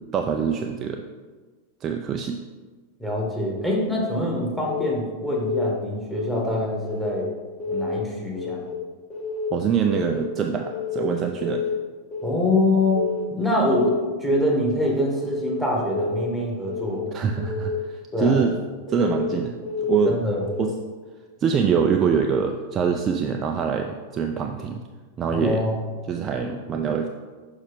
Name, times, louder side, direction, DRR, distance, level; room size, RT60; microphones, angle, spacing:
voice 1, 0.1-1.0 1.8-2.4 9.5-11.7 17.1-18.6 18.9-20.2 20.6-20.7 21.4-24.8 25.2-25.6 26.1-27.1, right 6 dB, 25° right, 4 dB, 0.4 m, -24 dB
voice 2, 3.0-7.3 7.7-8.6 12.2-13.0 13.3-13.9 14.2-17.1 18.1-18.4 20.0-20.4 25.3-25.7, left 1 dB, ahead, -2 dB, 1.6 m, -24 dB
Keyboard (musical) / Alarm, 4.6-5.0 5.3-5.7 6.1-6.5 6.8-7.2 7.6-8.0 8.4-8.7 9.1-9.5 9.9-10.2 10.6-11.0 11.4-11.7 12.1-12.5 12.9-13.2 13.6-14.0 14.4-14.7 15.1-15.5 15.9-16.3 16.6-17.0 17.4-17.8 18.1-18.5 18.9-19.3 19.6-20.0 20.4-20.8, left 4 dB, 20° left, 1.7 m, -30 dB
6.3 x 5.4 x 3.7 m, 1.4 s
figure-of-eight pair, 90°, 0 cm